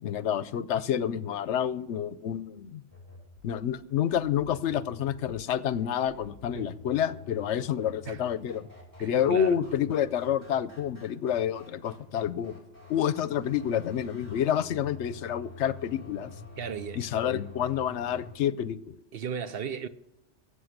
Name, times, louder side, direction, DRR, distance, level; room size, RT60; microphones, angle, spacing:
voice 1, 0.0-2.8 3.4-8.7 9.0-12.5 12.9-16.3 17.0-19.0, left 9 dB, 80° left, 0.9 m, -28 dB
sound 1, 2.9-18.3, left 3 dB, 15° right, 4.6 m, -48 dB
voice 2, 9.0-9.6 16.6-17.0 19.1-19.9, right 7 dB, 60° right, 0.8 m, -35 dB
14.0 x 8.1 x 6.5 m
omnidirectional pair, 1.2 m